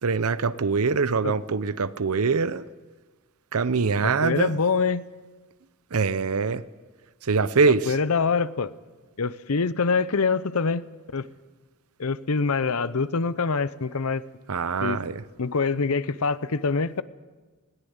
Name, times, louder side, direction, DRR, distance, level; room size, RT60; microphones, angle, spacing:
voice 1, 0.0-2.7 3.5-4.6 5.9-6.6 7.2-8.0 14.5-15.2, right 4 dB, 80° right, 0.7 m, -23 dB
voice 2, 4.0-5.0 7.9-8.7 9.2-10.8 11.1-11.3 12.0-14.2 14.8-15.0 15.4-17.0, left 4 dB, 75° left, 0.8 m, -25 dB
20.5 x 17.0 x 8.1 m
head